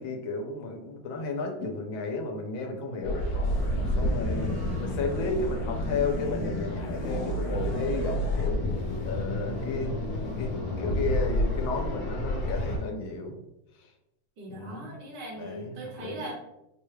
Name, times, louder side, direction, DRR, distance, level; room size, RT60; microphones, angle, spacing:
voice 1, 0.0-3.2 3.9-8.6 9.1-9.9 10.4-13.4 14.5-15.0 15.4-15.7 16.0-16.2, left 3 dB, 90° left, 3 dB, 1.5 m, -33 dB
sound 1, 3.0-12.8, left 1 dB, 65° left, 1.4 m, -29 dB
voice 2, 4.3-5.0 14.4-16.4, right 1 dB, 65° right, -1 dB, 1.5 m, -40 dB
4.8 x 2.3 x 3.1 m, 0.90 s
omnidirectional pair, 2.1 m